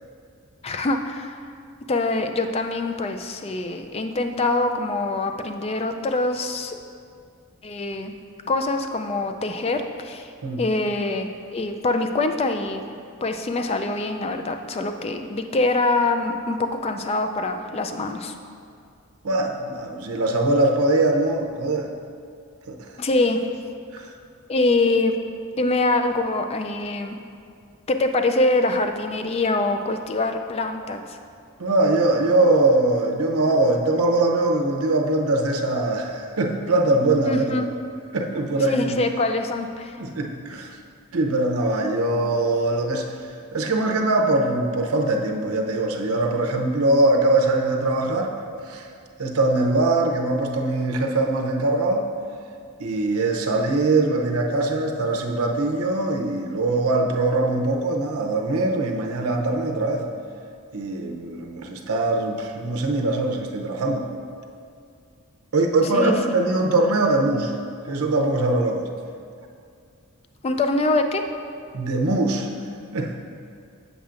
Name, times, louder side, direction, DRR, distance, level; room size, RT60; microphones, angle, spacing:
voice 1, 0.6-1.4 1.9-6.8 7.6-8.1 8.5-10.3 10.6-12.8 13.2-18.3 23.0-23.4 24.5-25.2 25.6-27.2 27.9-31.2 37.3-37.7 38.7-40.0 65.9-66.1 70.4-71.2, left 2 dB, 30° left, 6 dB, 0.3 m, -24 dB
voice 2, 19.2-21.9 22.7-23.0 23.9-24.1 31.6-37.7 38.1-39.0 40.0-40.8 41.1-43.2 43.5-48.4 48.7-48.9 49.2-52.1 52.8-60.0 60.7-64.1 65.5-67.5 67.8-68.9 71.7-72.5 72.9-73.1, right 2 dB, 85° right, 2 dB, 0.7 m, -22 dB
8.2 x 7.1 x 2.5 m, 2.4 s
head